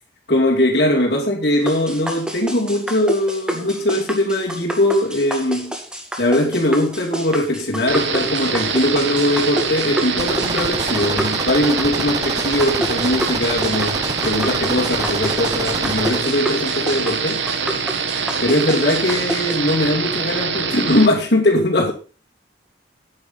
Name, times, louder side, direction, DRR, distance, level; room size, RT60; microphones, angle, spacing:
voice 1, 0.3-5.8 6.2-17.4 18.4-21.9, left 1 dB, 55° left, 3.0 m, -20 dB
sound 1, 1.7-19.6, equal, 5° right, 1.9 m, -29 dB
sound 2, 7.9-21.1, right 5 dB, 85° right, 1.8 m, -24 dB
sound 3, 10.2-16.2, right 2 dB, 20° right, 0.7 m, -28 dB
9.7 x 9.6 x 5.7 m
head